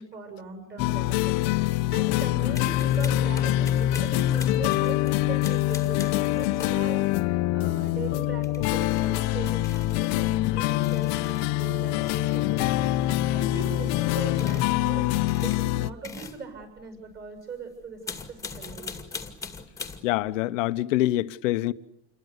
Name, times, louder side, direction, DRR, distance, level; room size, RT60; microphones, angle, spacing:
voice 1, 0.0-18.9, right 4 dB, 25° right, 7.4 m, -40 dB
sound 1, 0.8-15.9, left 15 dB, 45° left, 1.1 m, -25 dB
sound 2, 2.5-6.9 8.4-9.2 9.6-10.2 10.8-11.5 11.9-12.5 13.1-13.5 14.2-14.8 15.1-17.4 17.8-20.3, left 4 dB, 10° left, 2.3 m, -42 dB
voice 2, 20.0-21.7, left 16 dB, 70° left, 1.2 m, -25 dB
28.5 x 22.5 x 8.2 m
supercardioid pair, 150°, 39 cm